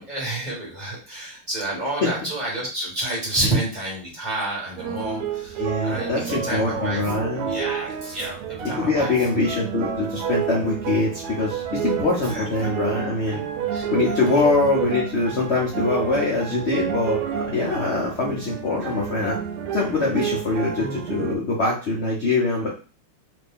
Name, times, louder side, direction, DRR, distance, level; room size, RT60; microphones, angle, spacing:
voice 1, 0.0-7.0 7.5-9.1 12.2-12.7 13.7-13.8 14.3-14.4, right 2 dB, 25° right, -4 dB, 1.1 m, -29 dB
sound 1, 4.8-21.4, right 7 dB, 80° right, 1.5 m, -30 dB
voice 2, 5.6-7.5 8.7-13.4 13.9-19.4 19.7-22.7, left 3 dB, 75° left, -4 dB, 0.6 m, -23 dB
3.4 x 2.6 x 3.5 m, 0.34 s
omnidirectional pair, 2.4 m